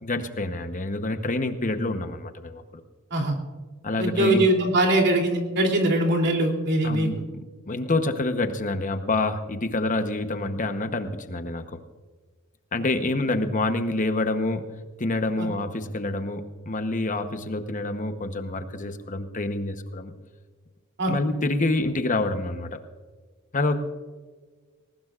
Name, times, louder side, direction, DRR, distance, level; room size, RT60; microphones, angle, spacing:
voice 1, 0.0-2.8 3.8-4.4 6.8-11.8 12.7-14.7 15.0-20.1 21.1-22.8 23.5-23.8, left 2 dB, 35° left, 8 dB, 1.0 m, -27 dB
voice 2, 4.0-7.1 15.4-15.5 21.0-21.1, right 1 dB, 55° right, 1 dB, 3.0 m, -22 dB
19.5 x 19.0 x 2.5 m, 1.4 s
head